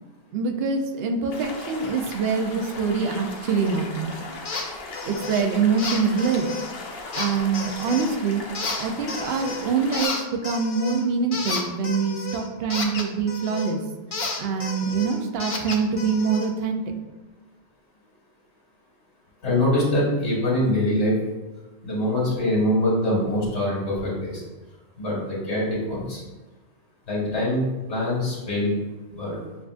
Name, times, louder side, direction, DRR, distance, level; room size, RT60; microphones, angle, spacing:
voice 1, 0.3-4.1 5.0-6.5 7.1-8.4 8.8-13.8 14.4-16.9, right 5 dB, 70° right, 4 dB, 0.8 m, -24 dB
sound 1, 1.3-10.1, left 3 dB, 65° left, 0.9 m, -38 dB
sound 2, 4.4-4.7 4.9-5.4 5.8-6.7 7.1-8.1 8.5-9.7 9.9-13.7 14.1-16.5, left 4 dB, 45° left, 0.4 m, -32 dB
voice 2, 19.4-21.2 21.8-24.4 24.9-26.2 27.1-27.6 27.9-28.8 29.1-29.4, left 1 dB, 80° left, -5 dB, 1.6 m, -24 dB
6.8 x 2.5 x 2.4 m, 1.2 s
omnidirectional pair, 1.1 m